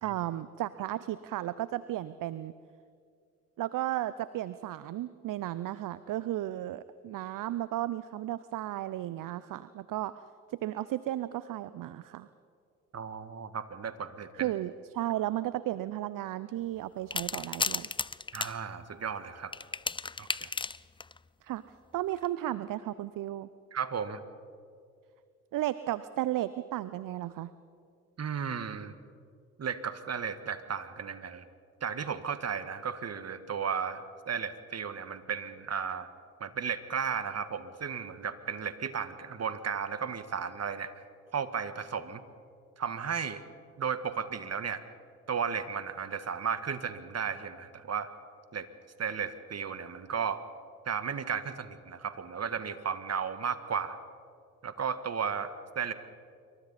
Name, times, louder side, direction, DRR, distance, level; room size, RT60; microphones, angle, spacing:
voice 1, 0.0-2.5 3.6-10.2 10.5-12.3 14.3-17.9 21.4-21.6 21.9-23.5 25.5-27.5, right 14 dB, 60° right, 15 dB, 0.7 m, -34 dB
voice 2, 12.9-14.5 18.3-19.5 20.2-20.5 23.7-24.2 28.2-28.9 29.6-31.4 31.8-36.1 36.4-40.9 41.3-42.2 42.8-43.4 43.8-44.8 45.3-48.1 48.5-48.7 49.0-50.4 50.8-54.0 54.6-55.9, right 6 dB, 45° right, 11 dB, 1.7 m, -34 dB
sound 1, 17.1-18.5 19.5-21.2 22.1-22.3, left 4 dB, 15° left, 0.5 m, -34 dB
27.0 x 24.0 x 4.3 m, 2.3 s
hypercardioid pair, 45°, 37 cm